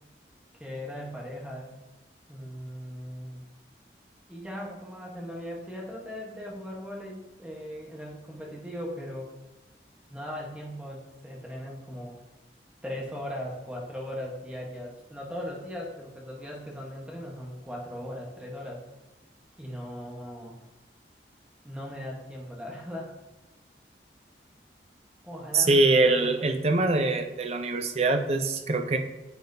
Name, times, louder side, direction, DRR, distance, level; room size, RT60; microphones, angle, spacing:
voice 1, 0.5-1.7 2.3-3.4 4.3-9.3 10.1-12.2 12.8-18.8 19.6-20.6 21.6-23.2 25.2-26.7, equal, 5° right, -2 dB, 1.1 m, -39 dB
voice 2, 25.5-29.0, right 2 dB, 35° right, 6 dB, 0.6 m, -23 dB
9.3 x 7.5 x 2.7 m, 1.1 s
head